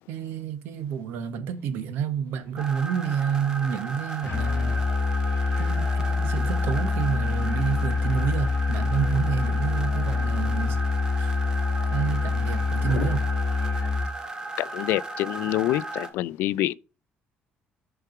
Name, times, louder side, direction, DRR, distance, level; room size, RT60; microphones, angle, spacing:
voice 1, 0.1-4.8 5.6-10.8 11.2-11.3 11.9-13.2, right 7 dB, 75° right, 1.2 m, -29 dB
sound 1, 2.6-16.1, right 2 dB, 20° right, 1.1 m, -36 dB
Musical instrument, 4.2-14.2, left 4 dB, 55° left, 1.1 m, -26 dB
voice 2, 14.6-16.7, left 15 dB, 80° left, 0.3 m, -27 dB
6.7 x 4.8 x 5.8 m
cardioid pair, 150°, 4 cm